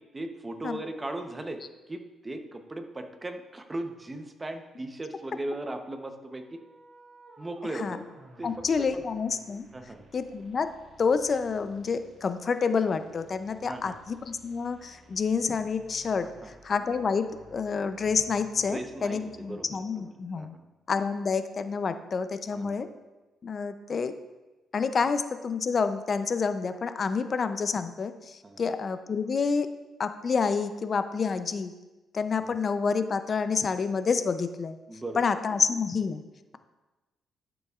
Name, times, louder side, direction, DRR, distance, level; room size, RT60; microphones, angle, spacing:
voice 1, 0.1-6.6 7.4-8.0 8.4-8.5 8.8-9.0 9.7-10.0 13.6-14.0 16.2-16.5 18.6-20.0 20.3-20.7 22.5-22.8 28.4-28.6 32.4-32.5 34.9-35.3, right 2 dB, 20° right, 6 dB, 0.8 m, -38 dB
sound 1, 6.2-20.1, right 2 dB, 60° right, 2.5 m, -55 dB
voice 2, 8.4-9.7 10.1-10.7 11.0-20.5 20.9-22.9 23.4-24.2 24.7-29.7 30.0-31.7 32.1-34.8 35.2-36.2, left 5 dB, 45° left, 10 dB, 0.5 m, -28 dB
12.0 x 7.0 x 2.4 m, 1.1 s
cardioid pair, 90°, 0 cm